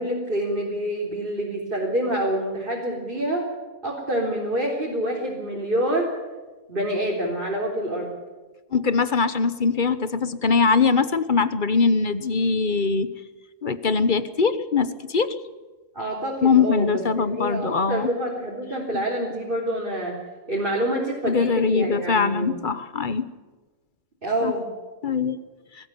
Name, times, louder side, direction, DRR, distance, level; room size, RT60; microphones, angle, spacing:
voice 1, 0.0-3.5 3.8-6.1 6.7-8.1 15.9-20.1 20.5-22.5 24.2-24.7, right 1 dB, 40° right, -4 dB, 4.0 m, -27 dB
voice 2, 8.7-13.1 13.6-15.3 16.4-18.1 18.9-19.0 21.3-23.2 24.4-24.5 25.0-25.4, left 5 dB, 40° left, 13 dB, 1.1 m, -22 dB
22.0 x 14.5 x 9.8 m, 1.3 s
omnidirectional pair, 1.3 m